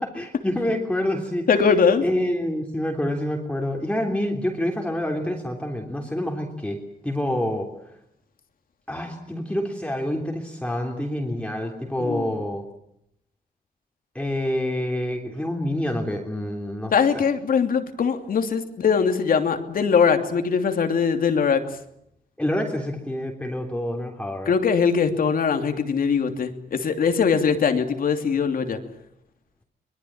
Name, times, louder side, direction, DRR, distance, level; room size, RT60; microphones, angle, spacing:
voice 1, 0.0-1.5 2.0-8.0 8.9-12.7 14.1-16.9 22.4-24.5, left 1 dB, 5° left, 1 dB, 3.3 m, -27 dB
voice 2, 1.5-2.0 12.0-12.3 16.9-21.6 24.5-28.8, left 6 dB, 65° left, 6 dB, 2.9 m, -21 dB
24.0 x 22.5 x 8.9 m, 0.74 s
wide cardioid pair, 130°, 16 cm